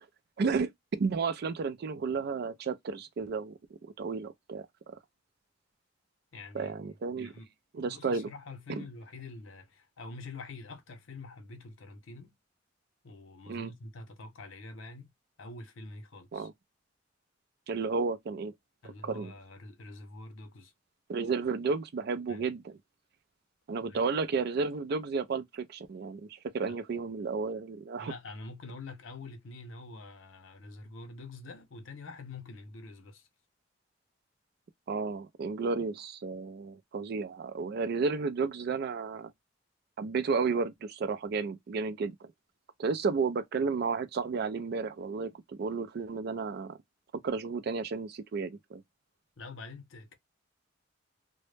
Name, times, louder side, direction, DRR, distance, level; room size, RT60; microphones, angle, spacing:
voice 1, 0.4-0.7 1.0-3.5 4.0-5.0 6.5-7.3 7.7-8.3 8.7-8.8 13.5-13.7 16.3-16.5 17.7-18.5 19.0-19.3 21.1-22.8 23.7-28.1 34.9-39.3 40.0-42.1 42.8-46.8 47.2-48.8, right 4 dB, 55° right, 0.3 m, -32 dB
voice 2, 6.3-6.7 7.1-12.3 13.0-15.1 15.4-16.5 18.8-20.7 22.3-22.4 23.9-24.0 26.7-26.8 28.0-33.3 49.4-50.2, left 3 dB, 80° left, 0.6 m, -46 dB
2.0 x 2.0 x 3.1 m
head